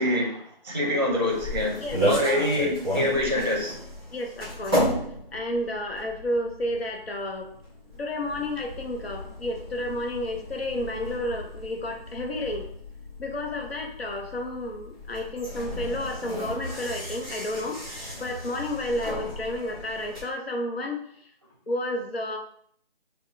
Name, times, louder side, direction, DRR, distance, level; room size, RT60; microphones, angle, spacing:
voice 1, 0.0-3.8, left 1 dB, 25° right, -1 dB, 0.5 m, -26 dB
sound 1, 1.1-20.2, equal, 5° left, 0.9 m, -34 dB
voice 2, 1.8-2.5 4.1-4.8 5.3-7.5 8.0-12.7 13.2-21.0 21.7-22.4, left 1 dB, 85° left, 2 dB, 0.9 m, -31 dB
3.5 x 2.3 x 3.4 m, 0.64 s
figure-of-eight pair, 165°, 30 cm